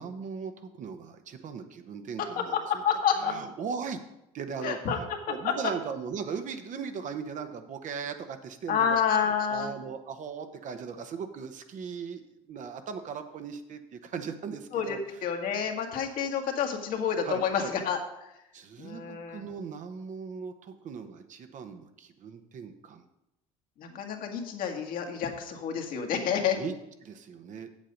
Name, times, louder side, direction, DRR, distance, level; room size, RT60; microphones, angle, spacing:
voice 1, 0.0-2.8 3.2-4.0 4.3-15.7 17.2-17.7 18.5-23.1 26.5-26.7 27.0-27.7, right 6 dB, 50° right, 7 dB, 1.0 m, -38 dB
voice 2, 2.8-3.3 4.6-5.0 5.4-5.5 8.7-9.7 14.7-18.0 18.8-19.4 23.8-26.6, left 7 dB, 60° left, 3 dB, 1.6 m, -29 dB
7.6 x 7.4 x 5.3 m, 0.86 s
supercardioid pair, 80°, 16 cm